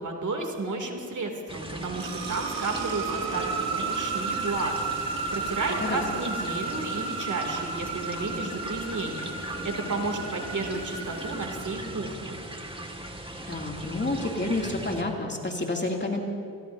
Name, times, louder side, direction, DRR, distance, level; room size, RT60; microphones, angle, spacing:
voice 1, 0.0-12.4, right 3 dB, 50° right, 2 dB, 2.9 m, -32 dB
sound 1, 1.5-15.0, right 1 dB, 15° right, 2.0 m, -39 dB
sound 2, 1.6-12.3, right 4 dB, 80° right, 3.4 m, -34 dB
voice 2, 13.5-16.2, left 2 dB, 30° left, 0 dB, 2.8 m, -29 dB
24.5 x 20.0 x 2.8 m, 2.3 s
supercardioid pair, 45°, 39 cm